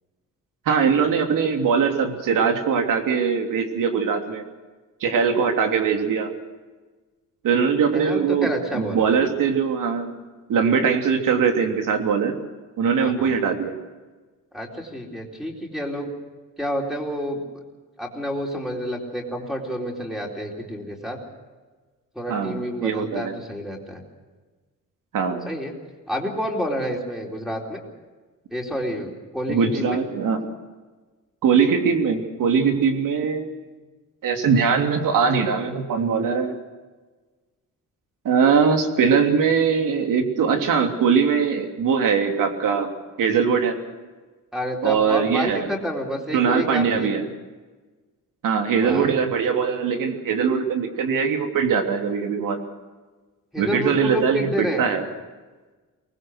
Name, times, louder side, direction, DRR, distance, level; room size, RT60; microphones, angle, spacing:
voice 1, 0.6-4.4 5.0-6.3 7.4-10.2 10.5-12.3 12.8-13.7 22.3-23.3 25.1-25.5 29.5-30.4 31.4-33.5 34.2-36.5 38.2-42.9 43.2-43.7 44.8-45.7 46.3-47.2 48.4-52.6 53.6-55.0, right 6 dB, 80° right, 4 dB, 3.2 m, -21 dB
voice 2, 7.9-9.2 13.0-13.4 14.5-16.1 16.6-17.4 18.0-21.2 22.2-24.0 25.5-25.7 26.1-27.8 28.5-30.0 44.5-47.1 48.7-49.2 53.5-54.9, equal, ahead, 0 dB, 4.0 m, -29 dB
24.0 x 20.0 x 6.5 m, 1.3 s
wide cardioid pair, 165°, 32 cm